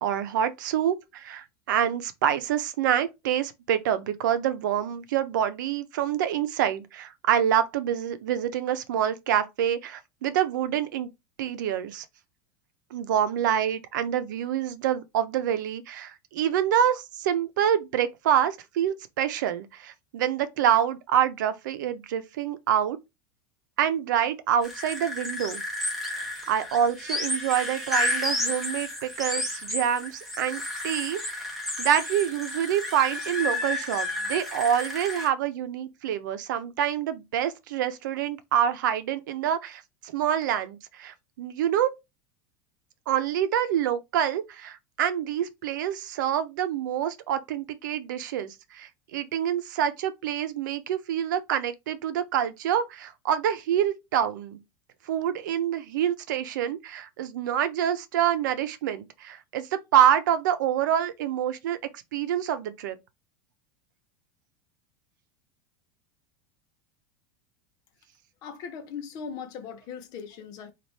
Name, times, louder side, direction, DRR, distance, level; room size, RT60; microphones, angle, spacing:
voice 1, 0.0-11.1 11.4-12.0 12.9-23.0 23.8-25.6 26.1-31.5 31.8-39.8 40.1-41.9 43.1-54.6 55.1-61.8 62.1-63.0, right 10 dB, 85° right, 0.7 m, -26 dB
sound 1, 24.6-35.3, left 1 dB, ahead, 1.1 m, -31 dB
voice 2, 68.4-70.7, left 6 dB, 40° left, 0.8 m, -39 dB
4.1 x 2.5 x 3.2 m
supercardioid pair, 170°, 10 cm